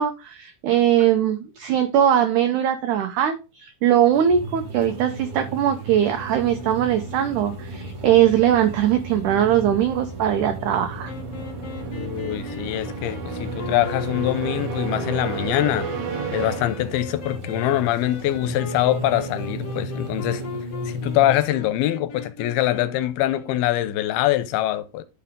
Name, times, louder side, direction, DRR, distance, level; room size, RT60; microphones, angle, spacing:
voice 1, 0.0-11.1, right 10 dB, 90° right, 1.7 m, -20 dB
sound 1, 4.1-21.3, right 1 dB, 45° right, 2.2 m, -35 dB
sound 2, 4.7-17.4, right 7 dB, 70° right, 3.2 m, -35 dB
sound 3, 11.0-23.7, left 5 dB, 55° left, 1.8 m, -38 dB
voice 2, 11.9-15.9 16.3-20.4 20.9-25.0, left 14 dB, 85° left, 2.6 m, -24 dB
11.5 x 4.8 x 3.6 m
omnidirectional pair, 4.5 m